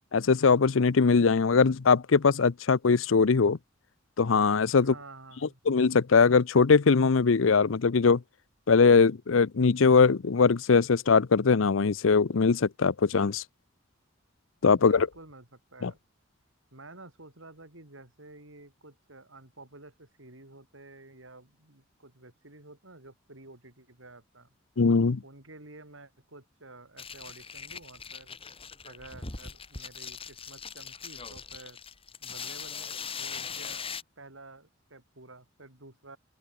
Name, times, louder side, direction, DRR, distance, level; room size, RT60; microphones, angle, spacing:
voice 1, 0.1-3.6 4.2-4.9 5.7-8.2 8.7-13.4 14.6-15.1 15.8-15.9 24.8-25.2, left 5 dB, 85° left, 0.6 m, -21 dB
voice 2, 4.8-5.6 14.7-16.0 16.7-24.5 25.2-28.4 28.8-31.8 32.2-33.9 34.2-36.2, right 2 dB, 85° right, 6.0 m, -51 dB
sound 1, 27.0-34.0, left 6 dB, 30° left, 2.5 m, -40 dB
open air
head